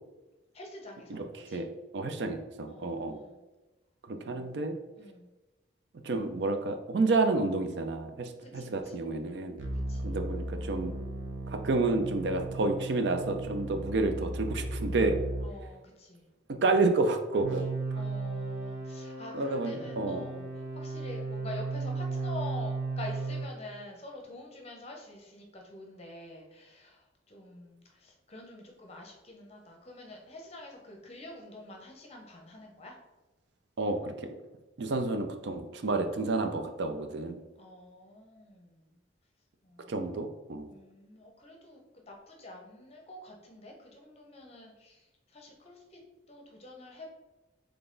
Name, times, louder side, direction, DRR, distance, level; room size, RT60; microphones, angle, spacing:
voice 1, 0.5-1.7 2.7-3.4 4.2-4.7 5.0-5.3 8.4-8.9 9.7-10.1 15.4-16.3 17.9-32.9 37.6-39.0 39.6-40.1 40.7-46.0 46.3-47.1, left 1 dB, 30° left, 1 dB, 0.8 m, -47 dB
voice 2, 1.1-1.7 1.9-3.2 4.1-4.7 6.0-9.6 10.0-10.9 11.5-15.2 16.5-17.6 19.3-20.2 33.8-34.3 34.8-37.4 39.9-40.7, right 3 dB, 60° right, 6 dB, 0.4 m, -30 dB
sound 1, 9.6-15.5 17.4-23.5, right 2 dB, 80° right, 0.8 m, -36 dB
3.9 x 3.3 x 3.8 m, 1.1 s
head